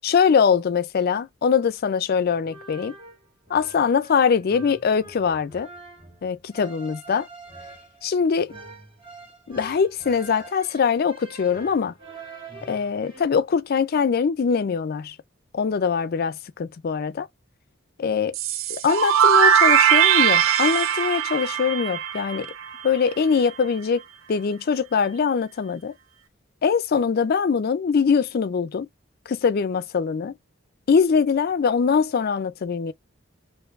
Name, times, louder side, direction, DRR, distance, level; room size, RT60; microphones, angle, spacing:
voice 1, 0.0-2.9 3.5-5.7 6.2-7.3 8.0-8.5 9.5-11.9 12.6-15.2 15.5-17.3 18.0-18.4 18.7-22.5 22.8-24.0 24.3-25.9 26.6-28.9 29.3-30.3 30.9-32.9, left 6 dB, 50° left, 0.4 m, -22 dB
sound 1, 2.3-13.2, right 3 dB, 25° right, 1.7 m, -45 dB
sound 2, 18.3-23.1, right 8 dB, 85° right, 0.4 m, -20 dB
4.4 x 2.6 x 2.4 m
head